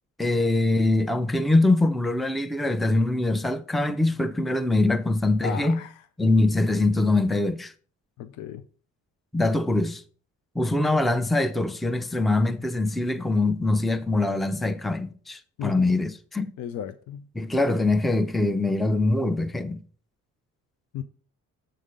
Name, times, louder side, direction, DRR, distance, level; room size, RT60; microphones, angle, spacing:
voice 1, 0.2-5.8 6.2-7.7 9.3-10.0 10.6-16.5 17.3-19.8, left 2 dB, ahead, 0.5 m, -23 dB
voice 2, 5.4-5.9 8.2-8.6 15.6-15.9 16.6-17.2 20.9-21.0, left 9 dB, 80° left, 0.6 m, -34 dB
7.6 x 3.7 x 6.5 m
cardioid pair, 90°, 30 cm